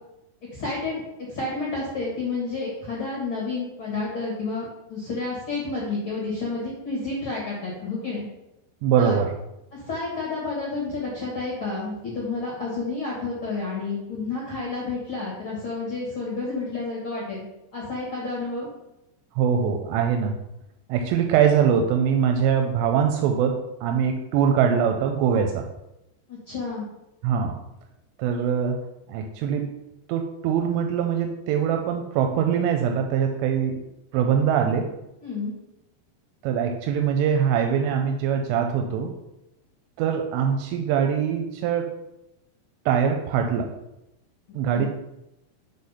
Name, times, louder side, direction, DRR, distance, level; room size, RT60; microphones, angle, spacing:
voice 1, 0.5-8.2 9.0-9.2 9.7-17.4 17.7-18.7 26.3-26.8 35.2-35.5 44.7-44.9, left 3 dB, 60° left, -5 dB, 1.4 m, -30 dB
voice 2, 8.8-9.3 19.4-20.4 20.9-25.6 27.2-27.6 28.2-28.8 29.1-29.8 30.1-33.8 34.1-34.9 36.4-39.1 40.0-41.9 42.9-43.7 44.5-44.9, right 7 dB, 90° right, 4 dB, 2.8 m, -23 dB
6.6 x 4.0 x 5.5 m, 0.90 s
omnidirectional pair, 4.8 m